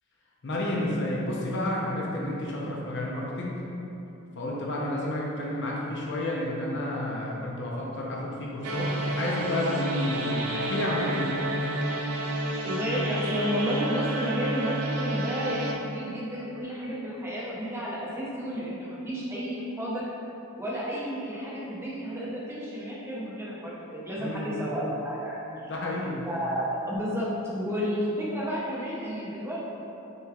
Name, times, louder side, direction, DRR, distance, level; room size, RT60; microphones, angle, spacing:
voice 1, 0.4-3.6 4.4-8.9 9.2-11.5 24.2-24.6 25.6-26.3, left 1 dB, 55° left, -4 dB, 0.6 m, -31 dB
sound 1, 8.6-15.7, right 1 dB, 85° right, 0.5 m, -30 dB
voice 2, 12.6-20.0 20.6-25.4 25.6-25.7 26.2-29.6, equal, 10° right, -7 dB, 0.6 m, -31 dB
6.6 x 3.1 x 2.4 m, 2.9 s
head